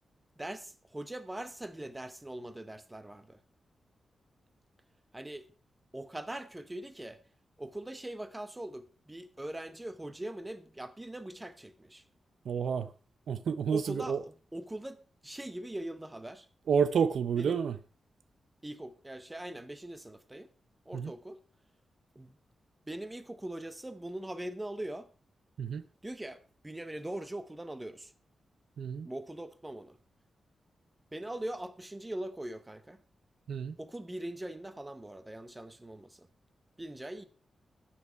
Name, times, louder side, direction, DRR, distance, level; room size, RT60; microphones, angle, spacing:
voice 1, 0.4-3.4 5.1-5.5 5.9-7.2 7.6-12.0 13.7-16.5 17.4-17.6 18.6-20.5 20.9-21.4 22.1-22.4 22.9-25.1 26.0-28.1 29.0-30.0 31.1-33.0 33.8-36.3 36.8-37.2, right 1 dB, 10° right, 0.8 m, -41 dB
voice 2, 12.4-12.9 13.3-14.2 16.7-17.8 20.9-21.1 25.6-25.8 28.8-29.1 33.5-33.8, right 7 dB, 75° right, 0.6 m, -29 dB
12.5 x 8.6 x 4.5 m
wide cardioid pair, 180°, 0 cm